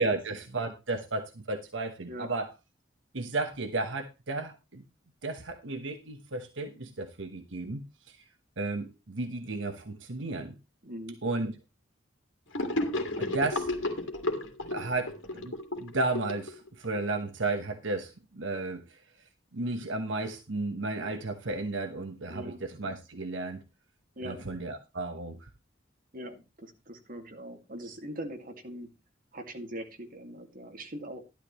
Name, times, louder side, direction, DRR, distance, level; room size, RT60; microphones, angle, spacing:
voice 1, 0.0-2.5 3.1-4.8 5.2-8.2 8.6-10.5 11.2-11.5 13.2-13.7 14.7-19.0 19.5-23.6 24.2-25.5, right 2 dB, 80° right, 6 dB, 1.2 m, -33 dB
voice 2, 10.8-11.2 22.3-22.6 24.2-24.4 26.1-28.9 29.3-31.2, right 1 dB, 50° right, 4 dB, 2.2 m, -41 dB
Gurgling / Sink (filling or washing), 12.5-17.0, left 1 dB, 85° left, 2.3 m, -32 dB
12.0 x 12.0 x 3.1 m, 0.26 s
head